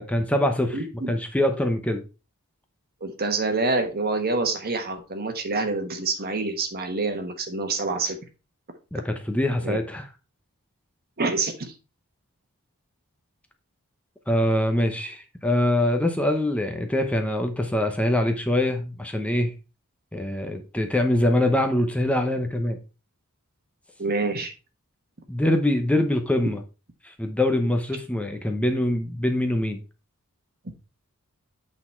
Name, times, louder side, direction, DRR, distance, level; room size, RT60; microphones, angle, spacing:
voice 1, 0.0-0.8 1.1-2.0 8.9-10.1 14.3-19.5 20.1-22.8 25.3-26.6 27.0-29.8, left 1 dB, 5° left, 5 dB, 0.8 m, -24 dB
voice 2, 0.7-1.1 3.0-8.2 9.6-9.8 11.2-11.7 24.0-24.5, right 3 dB, 45° right, 7 dB, 1.3 m, -27 dB
8.5 x 4.1 x 4.4 m, 0.31 s
head